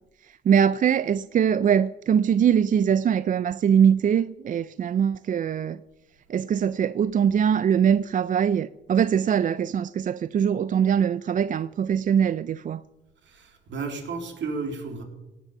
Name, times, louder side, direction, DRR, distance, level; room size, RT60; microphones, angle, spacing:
voice 1, 0.2-5.8 6.3-12.8, right 8 dB, 40° right, 0.4 m, -22 dB
voice 2, 13.2-15.0, right 4 dB, 65° right, 3.1 m, -33 dB
17.5 x 8.2 x 7.1 m
cardioid pair, 90°, 20 cm